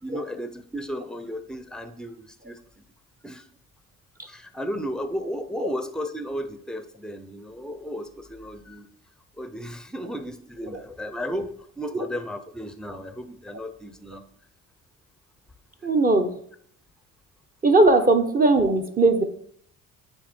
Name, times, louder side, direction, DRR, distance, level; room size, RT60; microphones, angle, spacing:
voice 1, 0.0-2.6 3.2-3.4 4.3-8.9 9.4-14.2 17.9-18.0, equal, ahead, 9 dB, 0.8 m, -34 dB
voice 2, 15.8-16.3 17.6-19.2, right 2 dB, 25° right, 6 dB, 1.1 m, -19 dB
8.5 x 2.9 x 4.5 m, 0.67 s
supercardioid pair, 65°, 34 cm